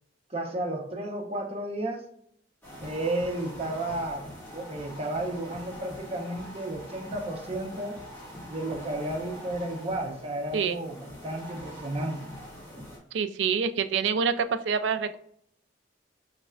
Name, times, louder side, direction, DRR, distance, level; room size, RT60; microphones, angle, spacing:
voice 1, 0.3-2.0 2.8-4.2 4.5-8.0 8.5-11.0 11.2-12.3, right 1 dB, 35° right, 2 dB, 0.7 m, -32 dB
sound 1, 2.6-13.0, equal, 10° left, 1.5 m, -44 dB
voice 2, 13.1-15.2, right 6 dB, 70° right, 11 dB, 0.3 m, -26 dB
5.2 x 3.2 x 2.3 m, 0.68 s
head